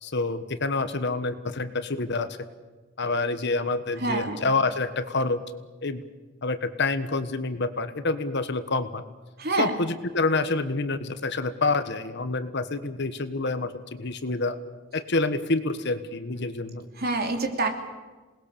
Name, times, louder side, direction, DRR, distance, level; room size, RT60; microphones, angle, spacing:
voice 1, 0.0-2.3 3.0-5.4 5.8-6.0 6.4-9.0 9.6-13.7 14.0-14.6 14.9-16.9, left 3 dB, 60° left, 11 dB, 1.3 m, -27 dB
voice 2, 4.0-4.4 9.4-9.8 17.0-17.7, right 2 dB, 50° right, 4 dB, 3.0 m, -26 dB
27.5 x 20.0 x 6.9 m, 1.3 s
head